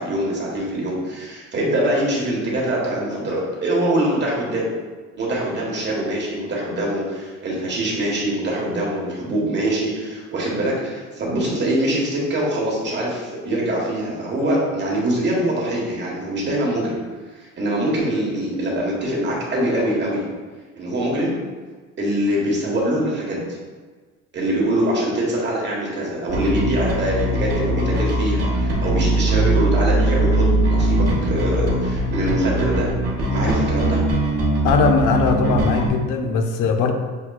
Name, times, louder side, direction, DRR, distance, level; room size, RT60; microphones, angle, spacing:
voice 1, 0.0-4.7 5.1-17.0 17.3-20.3 20.8-21.4 22.0-23.5 24.3-32.9 33.3-34.0, right 1 dB, 35° right, -4 dB, 1.3 m, -23 dB
Bass guitar, 26.3-35.9, right 1 dB, 50° right, 1.0 m, -21 dB
voice 2, 34.6-36.9, left 4 dB, 75° left, 4 dB, 0.6 m, -20 dB
6.6 x 2.3 x 2.3 m, 1.4 s
cardioid pair, 115°, 31 cm